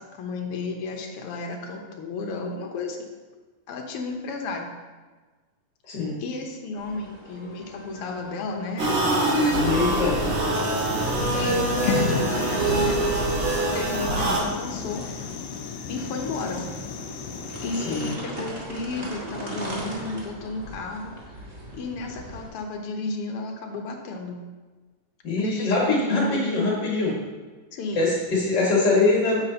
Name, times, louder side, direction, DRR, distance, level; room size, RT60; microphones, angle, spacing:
voice 1, 0.0-3.0 3.7-4.7 6.2-10.7 11.3-13.1 13.7-15.0 15.9-16.7 17.6-21.1 21.7-24.4 25.4-26.7 27.7-28.1, left 3 dB, 65° left, 2 dB, 1.5 m, -33 dB
voice 2, 5.9-6.2 9.6-10.2 17.9-18.1 25.2-27.1 27.9-29.4, left 3 dB, 45° left, -5 dB, 1.8 m, -23 dB
sound 1, 6.8-22.5, right 1 dB, 35° right, 0.9 m, -40 dB
sound 2, 8.8-14.4, right 2 dB, 80° right, 3.2 m, -24 dB
sound 3, 10.5-18.2, left 7 dB, 85° left, 1.4 m, -33 dB
9.4 x 8.1 x 2.8 m, 1.3 s
omnidirectional pair, 3.4 m